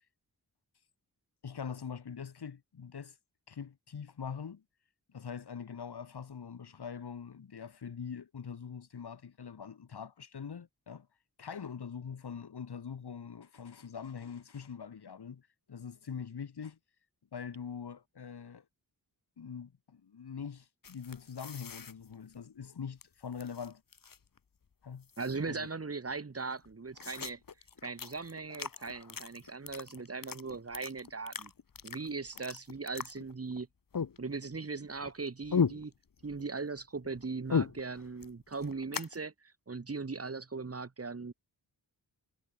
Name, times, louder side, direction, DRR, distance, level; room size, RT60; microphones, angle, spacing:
voice 1, 1.4-3.2 3.5-4.6 5.1-11.1 11.4-16.8 17.3-18.6 19.4-23.8 24.8-25.1 25.5-25.7 32.4-32.5, left 6 dB, 75° left, 5.2 m, -43 dB
sound 1, 20.8-23.0 23.3-24.4 24.6-24.7 25.0-25.7 26.1-26.2 26.4-33.6 33.9-34.6 34.9-36.5 36.8-39.2, left 6 dB, 55° left, 2.9 m, -37 dB
voice 2, 25.2-27.4 27.8-31.5 31.8-33.7 34.2-35.9 36.2-41.3, right 4 dB, 35° right, 4.5 m, -39 dB
wide cardioid pair, 165°, 40 cm